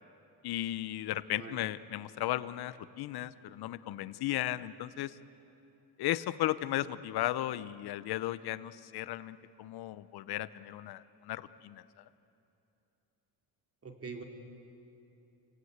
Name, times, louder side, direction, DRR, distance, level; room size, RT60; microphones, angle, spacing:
voice 1, 0.4-5.1 6.0-11.8, left 14 dB, 65° left, 15 dB, 0.8 m, -35 dB
voice 2, 13.8-14.2, right 5 dB, 35° right, 3 dB, 2.8 m, -43 dB
28.0 x 18.0 x 8.0 m, 2.9 s
cardioid pair, 120°, 40 cm